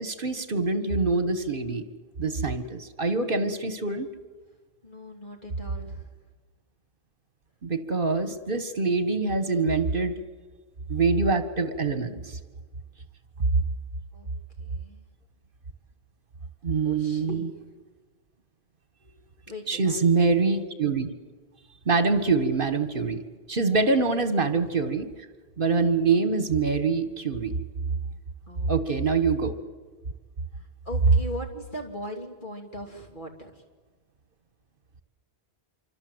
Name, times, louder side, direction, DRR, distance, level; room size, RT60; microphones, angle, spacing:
voice 1, 0.0-1.9 2.2-4.1 7.6-10.1 10.9-12.4 16.6-17.4 19.7-21.1 21.8-23.2 23.5-25.1 25.6-27.5 28.7-29.6, right 4 dB, 55° right, 10 dB, 1.7 m, -25 dB
voice 2, 4.8-6.1 14.1-14.3 14.6-15.0 16.8-17.7 19.5-20.3 22.0-22.2 24.1-24.2 28.5-28.7 29.0-29.3 30.5-33.5, equal, 50° left, 3 dB, 3.2 m, -40 dB
26.5 x 24.5 x 8.0 m, 1.4 s
omnidirectional pair, 1.1 m